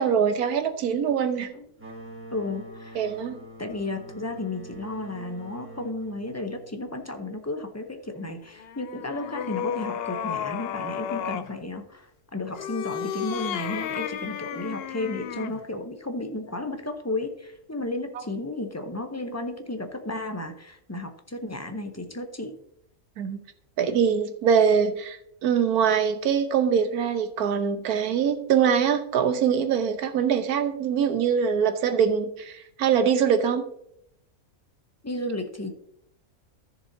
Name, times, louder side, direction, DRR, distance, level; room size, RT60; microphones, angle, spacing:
voice 1, 0.0-1.5 2.9-3.4 23.2-23.4 23.8-33.7, right 7 dB, 90° right, 9 dB, 1.3 m, -23 dB
sound 1, 1.8-7.2, right 1 dB, 10° right, 1.3 m, -44 dB
voice 2, 2.3-3.0 3.6-22.6 35.0-35.7, left 2 dB, 20° left, 5 dB, 0.4 m, -33 dB
sound 2, 8.5-11.5 12.5-15.6, left 9 dB, 75° left, 0.5 m, -33 dB
13.5 x 6.9 x 2.7 m, 0.74 s
omnidirectional pair, 1.6 m